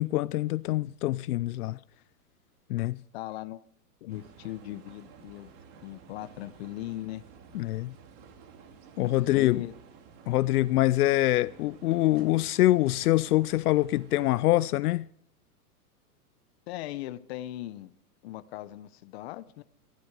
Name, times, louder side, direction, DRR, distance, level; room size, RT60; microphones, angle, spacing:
voice 1, 0.0-1.8 2.7-3.0 7.5-7.9 9.0-9.6 10.3-15.1, left 16 dB, 75° left, 0.5 m, -25 dB
voice 2, 2.8-3.6 4.0-5.5 5.8-7.2 9.0-9.7 16.7-18.0 18.2-19.6, left 15 dB, 40° left, 0.9 m, -39 dB
sound 1, 4.1-14.3, right 6 dB, 35° right, 2.2 m, -53 dB
16.5 x 15.5 x 4.8 m
supercardioid pair, 155°, 46 cm